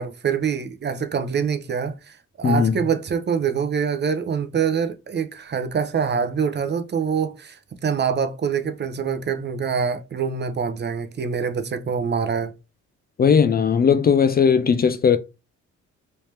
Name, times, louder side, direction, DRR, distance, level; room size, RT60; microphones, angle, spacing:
voice 1, 0.0-12.5, right 6 dB, 35° right, 0.6 m, -25 dB
voice 2, 2.4-2.8 13.2-15.2, left 6 dB, 30° left, 0.4 m, -17 dB
3.2 x 2.8 x 3.2 m
cardioid pair, 90°, 30 cm